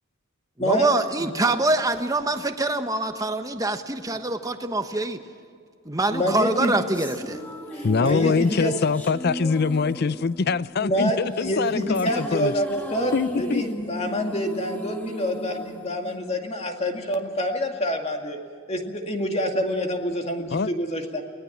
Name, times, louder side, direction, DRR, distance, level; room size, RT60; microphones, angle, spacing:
voice 1, 0.6-5.2 5.8-7.4, right 2 dB, 15° right, 1.1 m, -25 dB
voice 2, 6.1-6.8 7.7-8.7 10.8-18.4 18.7-21.2, equal, 30° left, 2.2 m, -27 dB
sound 1, 6.4-16.8, equal, 10° left, 1.9 m, -36 dB
voice 3, 7.8-12.5 13.1-13.6 20.5-20.7, left 4 dB, 50° left, 0.5 m, -23 dB
24.0 x 18.5 x 7.3 m
head